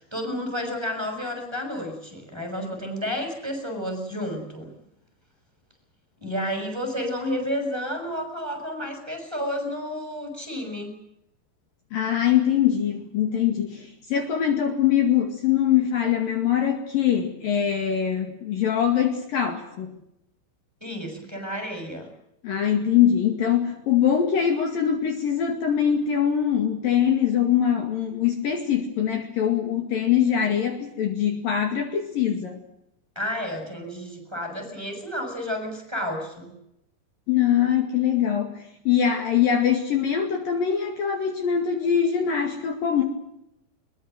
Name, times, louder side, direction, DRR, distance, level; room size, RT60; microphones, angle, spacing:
voice 1, 0.0-4.7 6.2-10.9 20.8-22.1 33.1-36.5, equal, 5° right, 4 dB, 6.4 m, -31 dB
voice 2, 11.9-19.9 22.4-32.6 37.3-43.0, left 9 dB, 60° left, 4 dB, 3.6 m, -23 dB
22.5 x 22.0 x 8.0 m, 0.81 s
omnidirectional pair, 5.0 m